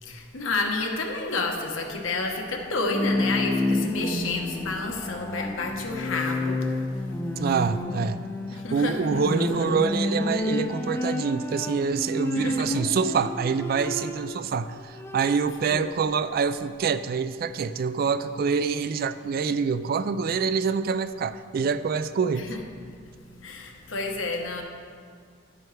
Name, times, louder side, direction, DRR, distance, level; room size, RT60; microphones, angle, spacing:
voice 1, 0.0-7.0 8.5-9.7 12.3-12.7 15.6-15.9 22.3-22.6 22.9-24.6, left 3 dB, 85° left, 2 dB, 1.2 m, -30 dB
Bowed string instrument, 2.7-14.5 14.8-15.6, left 1 dB, 10° left, 0.5 m, -30 dB
voice 2, 7.4-8.2 8.5-22.5, right 5 dB, 50° right, 13 dB, 0.3 m, -26 dB
11.5 x 8.8 x 3.3 m, 2.1 s
head